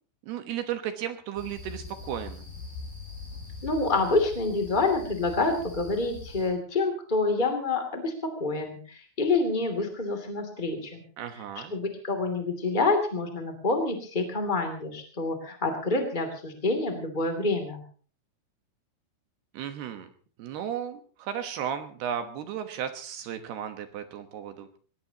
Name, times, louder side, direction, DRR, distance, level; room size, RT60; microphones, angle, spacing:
voice 1, 0.2-2.5 11.2-11.7 19.5-20.1 20.4-24.8, right 9 dB, 70° right, 8 dB, 2.7 m, -34 dB
sound 1, 1.4-6.5, left 4 dB, 45° left, 8.5 m, -42 dB
voice 2, 3.6-11.0 11.7-17.8, left 3 dB, 25° left, 4 dB, 1.0 m, -27 dB
23.0 x 19.0 x 2.9 m, 0.42 s
omnidirectional pair, 5.9 m